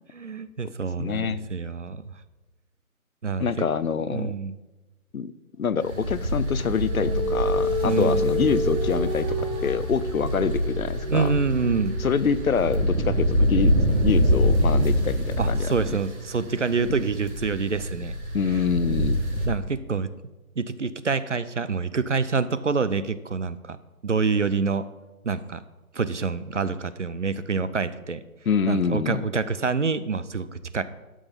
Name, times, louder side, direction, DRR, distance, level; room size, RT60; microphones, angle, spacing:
voice 1, 0.1-2.0 3.2-3.6 4.1-4.6 7.8-8.3 11.1-12.0 15.4-18.1 19.4-20.1 20.6-23.8 24.0-24.8 25.2-25.6 25.9-28.2 28.7-30.8, right 5 dB, 55° right, 14 dB, 0.6 m, -26 dB
voice 2, 1.0-1.5 3.4-4.3 5.1-5.3 5.6-11.3 12.0-13.8 14.0-15.7 18.3-19.2 28.5-29.2, left 6 dB, 70° left, 16 dB, 0.7 m, -26 dB
sound 1, 5.7-17.3, equal, 25° right, 1.2 m, -32 dB
sound 2, 5.8-19.5, equal, 70° right, 2.9 m, -25 dB
13.0 x 6.3 x 5.2 m, 1.1 s
hypercardioid pair, 180°, 44 cm